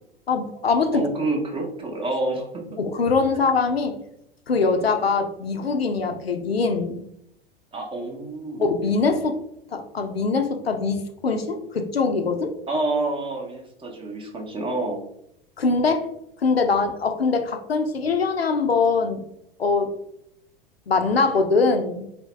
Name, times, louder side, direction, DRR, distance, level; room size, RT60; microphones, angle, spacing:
voice 1, 0.3-1.1 2.8-4.0 4.5-7.1 8.6-9.4 9.7-12.5 15.6-16.1 16.4-19.2 19.6-19.9 20.9-22.1, left 4 dB, 90° left, 7 dB, 0.5 m, -22 dB
voice 2, 0.9-2.5 7.7-8.7 12.7-15.0, right 2 dB, 20° right, 1 dB, 0.7 m, -28 dB
2.9 x 2.8 x 3.1 m, 0.77 s
figure-of-eight pair, 90°, 29 cm